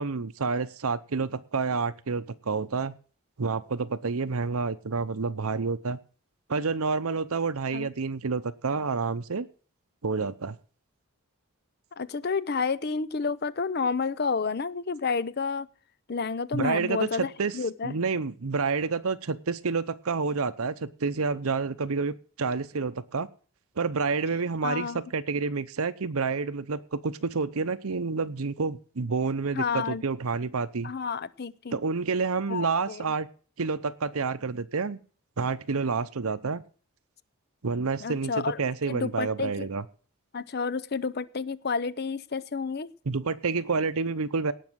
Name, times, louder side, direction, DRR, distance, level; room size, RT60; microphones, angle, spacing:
voice 1, 0.0-3.0 3.4-6.0 6.5-9.5 10.0-10.6 16.5-17.6 17.8-23.3 23.8-30.9 31.7-33.3 33.6-35.0 35.4-36.6 37.6-39.8 43.1-44.5, right 4 dB, 75° right, 11 dB, 0.7 m, -29 dB
voice 2, 12.0-15.7 16.1-17.9 24.6-25.0 29.5-30.0 30.8-31.8 32.5-33.1 38.0-38.6 38.9-39.7 40.3-42.9, left 5 dB, 45° left, 17 dB, 0.5 m, -30 dB
18.0 x 6.3 x 6.3 m, 0.40 s
head